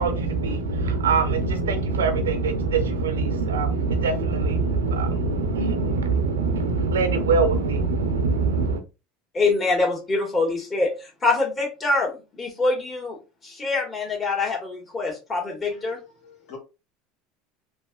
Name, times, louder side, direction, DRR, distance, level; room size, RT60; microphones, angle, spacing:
voice 1, 0.0-8.8, right 4 dB, 90° right, 0.5 m, -23 dB
voice 2, 9.3-13.2 13.4-16.0, left 3 dB, 30° left, 1.4 m, -25 dB
voice 3, 15.7-16.6, left 6 dB, 60° left, 1.2 m, -45 dB
3.2 x 2.5 x 2.3 m
hypercardioid pair, 85°, 0 cm